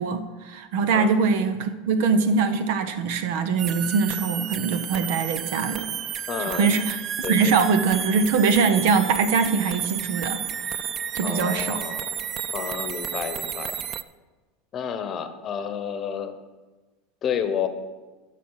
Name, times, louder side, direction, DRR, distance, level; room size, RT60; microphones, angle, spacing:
voice 1, 0.0-5.9 6.5-7.0 7.3-10.9 11.1-11.8, right 5 dB, 70° right, 10 dB, 0.9 m, -23 dB
sound 1, 3.6-14.0, right 9 dB, 35° right, 0.4 m, -32 dB
voice 2, 6.3-6.7 7.2-7.6 11.2-12.1 12.5-13.8 14.7-16.4 17.2-17.7, left 8 dB, 35° left, 9 dB, 1.0 m, -30 dB
14.0 x 5.9 x 4.8 m, 1.2 s
supercardioid pair, 120°, 0 cm